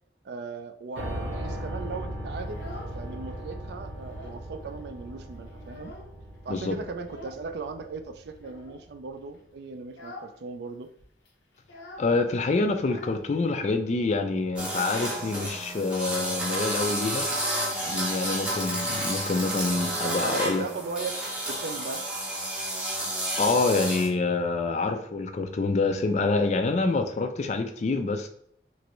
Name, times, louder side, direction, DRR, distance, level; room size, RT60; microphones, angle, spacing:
voice 1, 0.2-2.6 2.9-5.9 6.4-10.9 19.8-21.2 21.5-22.0, right 4 dB, 60° right, 8 dB, 0.3 m, -38 dB
Piano, 1.0-9.0, right 1 dB, 85° right, 0.9 m, -38 dB
Child speech kid speaking, 2.3-3.4 3.7-4.5 4.8-4.9 5.2-6.3 7.0-7.5 8.3-8.8 9.3-9.5 9.8-10.4 10.6-10.7 11.0-13.8, left 1 dB, 90° left, 0.7 m, -47 dB
voice 2, 12.0-17.3 17.8-20.6 23.4-28.3, left 3 dB, 40° left, 6 dB, 0.3 m, -26 dB
sound 1, 14.6-24.1, right 1 dB, 5° right, 0.6 m, -31 dB
3.0 x 2.5 x 2.9 m, 0.65 s
head